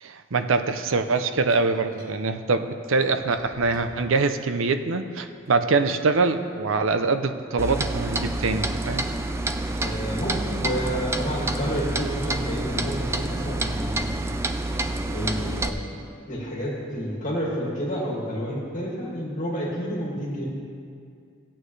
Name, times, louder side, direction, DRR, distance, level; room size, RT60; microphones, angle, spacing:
voice 1, 0.0-9.0, right 3 dB, 70° right, 8 dB, 0.6 m, -24 dB
sound 1, 1.5-2.2 3.0-4.1 4.7-5.6, right 1 dB, 45° right, 1.7 m, -47 dB
Clock, 7.6-15.7, right 2 dB, 15° right, 0.3 m, -28 dB
voice 2, 9.8-14.1 15.1-15.8 16.3-20.5, equal, 35° left, -5 dB, 2.2 m, -29 dB
16.5 x 8.8 x 3.2 m, 2.3 s
head